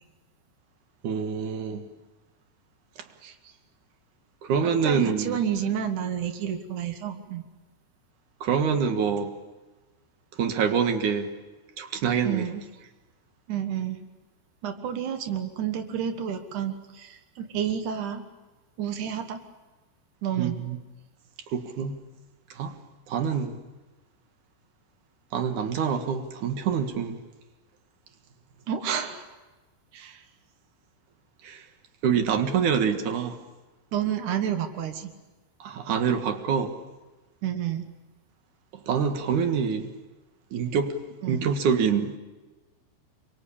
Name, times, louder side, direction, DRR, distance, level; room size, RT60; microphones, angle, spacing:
voice 1, 1.0-1.9 4.4-5.4 8.4-9.3 10.4-11.3 11.8-12.4 20.4-20.8 21.5-22.0 22.6-22.7 23.1-23.6 25.3-27.2 31.4-31.6 32.0-33.4 35.6-36.7 38.9-39.9 40.5-40.9 41.2-42.2, right 7 dB, 65° right, 2.1 m, -26 dB
voice 2, 4.6-7.4 12.2-12.9 13.5-14.0 14.6-18.2 18.8-19.4 20.2-20.6 28.7-29.2 29.9-30.2 33.9-35.1 37.4-37.9 41.2-41.5, right 9 dB, 85° right, 1.7 m, -30 dB
28.5 x 23.5 x 8.6 m
omnidirectional pair, 5.7 m